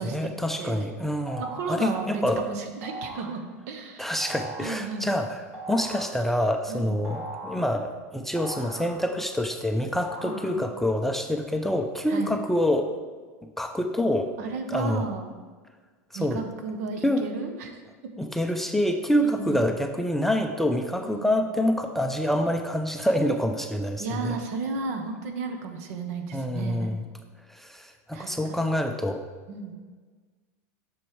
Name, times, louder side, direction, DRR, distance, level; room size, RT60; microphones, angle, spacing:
voice 1, 0.0-1.4 1.7-2.4 4.0-5.4 5.7-12.9 13.6-14.3 14.7-15.1 16.2-16.4 17.0-17.2 18.2-24.4 26.3-26.9 27.5-29.2, equal, 5° left, 4 dB, 0.4 m, -26 dB
voice 2, 0.6-0.9 1.4-4.1 4.6-5.3 6.7-7.1 10.2-10.6 12.1-12.3 14.4-15.3 16.1-17.8 19.2-19.6 21.0-21.3 24.0-26.9 28.1-28.6 29.5-29.7, right 4 dB, 70° right, 5 dB, 1.0 m, -34 dB
sound 1, 1.3-1.8 2.8-3.4 4.2-4.8 5.5-6.2 7.0-7.7 8.4-9.3 10.0-10.9, right 2 dB, 15° right, 1.7 m, -39 dB
7.4 x 6.3 x 3.2 m, 1.4 s
supercardioid pair, 125°, 9 cm